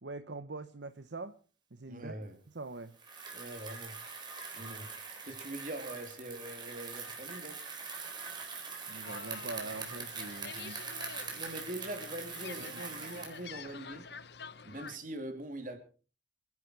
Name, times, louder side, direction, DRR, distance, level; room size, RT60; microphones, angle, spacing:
voice 1, 0.0-1.4 1.7-2.2 2.5-2.9 8.9-10.8, right 3 dB, 70° right, 0.9 m, -43 dB
voice 2, 1.9-2.4 3.3-4.0 4.5-5.0 5.2-7.6 9.4-9.5 11.3-14.1 14.6-15.8, right 1 dB, 45° right, 3.2 m, -43 dB
Bicycle, 2.9-13.5, right 5 dB, 25° right, 4.0 m, -43 dB
sound 1, 9.1-15.0, left 5 dB, 60° left, 1.0 m, -48 dB
27.0 x 11.0 x 4.7 m
head